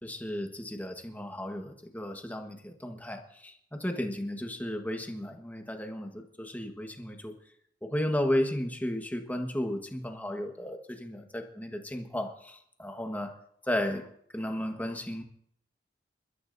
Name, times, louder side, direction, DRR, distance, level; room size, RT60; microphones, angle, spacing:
voice 1, 0.0-7.3 7.8-13.3 13.6-14.1 14.3-15.2, left 1 dB, 10° left, 3 dB, 1.3 m, -34 dB
28.0 x 12.5 x 2.7 m, 0.69 s
head